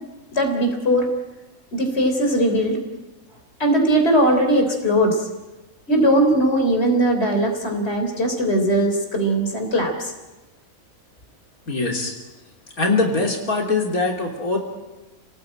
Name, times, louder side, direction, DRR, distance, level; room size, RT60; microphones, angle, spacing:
voice 1, 0.3-1.1 1.7-2.8 3.6-5.3 5.9-10.1, right 1 dB, 45° left, 4 dB, 4.0 m, -19 dB
voice 2, 11.7-12.1 12.8-14.6, left 3 dB, 90° left, 1 dB, 3.7 m, -22 dB
29.0 x 18.5 x 9.0 m, 1.1 s
omnidirectional pair, 1.5 m